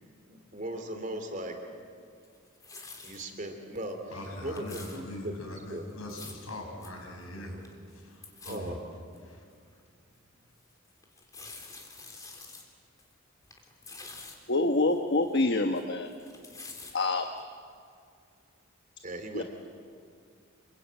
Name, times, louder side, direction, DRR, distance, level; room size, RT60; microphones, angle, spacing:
voice 1, 0.0-1.6 3.0-4.2 4.4-5.4 5.7-5.9 8.4-8.8 19.0-19.4, right 1 dB, 40° right, 5 dB, 3.1 m, -38 dB
sound 1, 2.2-3.2 3.8-3.9 4.2-5.0 5.9-6.4 6.8-6.9 7.2-7.3 7.6-7.9 8.2-8.6 9.1-9.2 9.8-9.9 11.0-12.6 13.0-13.1 13.4-14.4 14.8-15.8 16.1-16.9 17.4-17.5, left 3 dB, 15° left, 3.2 m, -47 dB
voice 2, 4.1-7.7 7.9-8.8 9.2-9.4, left 1 dB, 90° left, 2 dB, 6.3 m, -41 dB
voice 3, 14.5-16.1 16.9-17.3 19.3-19.4, left 2 dB, 55° left, 5 dB, 1.2 m, -26 dB
27.0 x 23.5 x 9.0 m, 2.2 s
head